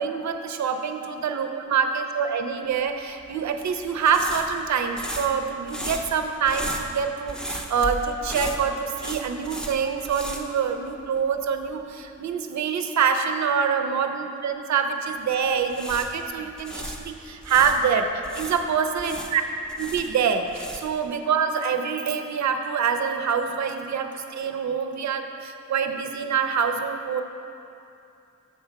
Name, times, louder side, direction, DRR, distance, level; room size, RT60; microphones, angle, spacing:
voice 1, 0.0-19.4 19.8-27.2, right 6 dB, 70° right, 6 dB, 0.5 m, -25 dB
sound 1, 3.2-11.3 11.5-11.7 15.5-17.8 18.2-21.0, equal, 5° left, 0.4 m, -36 dB
7.1 x 4.4 x 5.8 m, 2.7 s
wide cardioid pair, 175°, 30 cm